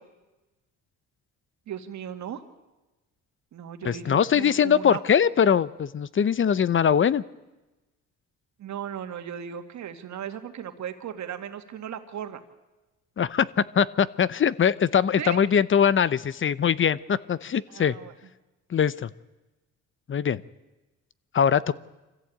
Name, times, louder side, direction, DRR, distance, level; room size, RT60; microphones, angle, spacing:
voice 1, 1.7-2.4 3.5-5.0 8.6-12.4 15.2-15.4 17.7-18.1, right 9 dB, 70° right, 7 dB, 2.1 m, -36 dB
voice 2, 3.8-7.2 13.2-13.5 13.7-18.0 18.7-19.1 20.1-20.4 21.3-21.7, left 8 dB, 40° left, 18 dB, 0.8 m, -22 dB
25.0 x 15.0 x 8.7 m, 1.1 s
cardioid pair, 90°, 30 cm